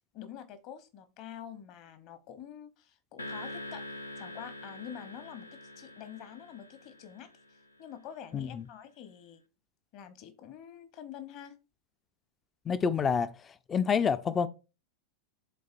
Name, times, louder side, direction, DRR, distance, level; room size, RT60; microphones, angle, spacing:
voice 1, 0.1-3.9 4.2-7.3 7.8-9.4 9.9-11.6, left 9 dB, 40° left, 1.0 m, -46 dB
sound 1, 3.2-7.7, left 1 dB, 85° left, 0.6 m, -44 dB
voice 2, 8.3-8.6 12.7-13.3 13.7-14.5, left 6 dB, 20° left, 0.4 m, -27 dB
11.5 x 3.9 x 2.6 m
figure-of-eight pair, 90°, 0 cm